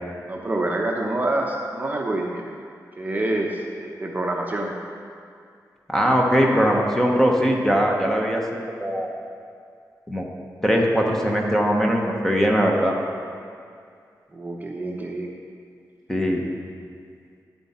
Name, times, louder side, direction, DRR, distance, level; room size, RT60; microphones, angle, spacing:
voice 1, 0.3-2.4 3.0-4.7 14.3-15.3, right 2 dB, 25° right, 0 dB, 0.8 m, -27 dB
voice 2, 5.9-8.4 8.7-9.1 10.1-10.2 10.6-12.9 16.1-16.4, equal, 5° left, 0 dB, 1.0 m, -20 dB
10.5 x 7.5 x 4.3 m, 2.3 s
wide cardioid pair, 140°, 7 cm